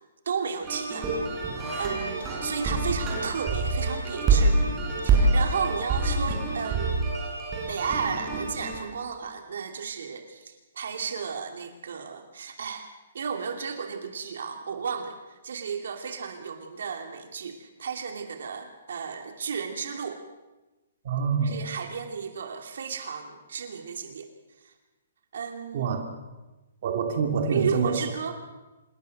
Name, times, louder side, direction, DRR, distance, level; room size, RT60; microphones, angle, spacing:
voice 1, 0.2-1.3 1.8-4.6 5.0-7.0 7.7-12.9 13.1-20.2 21.4-24.3 24.6-24.7 25.3-26.0 27.5-28.3, right 6 dB, 60° right, 5 dB, 2.6 m, -33 dB
sound 1, 0.6-8.8, right 3 dB, 15° right, 5.3 m, -26 dB
voice 2, 21.0-21.6 25.7-26.0 26.8-28.0, right 6 dB, 40° right, 3 dB, 2.7 m, -26 dB
26.5 x 21.5 x 6.6 m, 1.1 s
hypercardioid pair, 175°, 0 cm